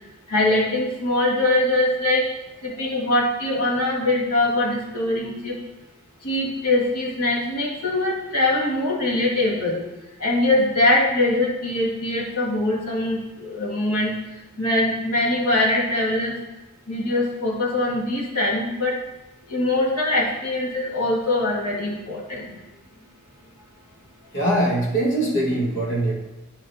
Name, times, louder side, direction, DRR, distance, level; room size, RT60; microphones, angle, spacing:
voice 1, 0.3-2.3 2.6-5.6 6.2-9.8 10.2-14.2 14.6-16.3 16.9-19.0 19.5-22.6, left 2 dB, 90° left, -3 dB, 1.7 m, -22 dB
voice 2, 24.3-26.1, right 1 dB, 55° left, -4 dB, 1.6 m, -22 dB
9.5 x 5.1 x 2.7 m, 1.0 s
head